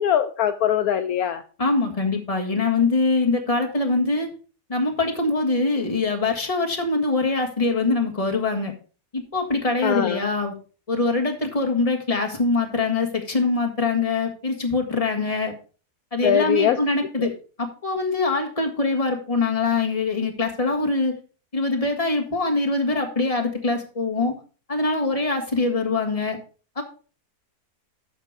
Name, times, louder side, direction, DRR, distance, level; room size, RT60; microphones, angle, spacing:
voice 1, 0.0-1.4 9.8-10.2 16.2-16.8 17.2-17.3, left 9 dB, 70° left, 8 dB, 1.1 m, -21 dB
voice 2, 1.6-4.3 4.7-8.7 9.1-10.5 10.9-15.5 16.1-17.3 17.6-21.1 21.5-24.3 24.7-26.4 26.8-26.9, left 3 dB, 20° left, 3 dB, 1.8 m, -23 dB
13.0 x 4.4 x 4.7 m, 0.37 s
omnidirectional pair, 1.7 m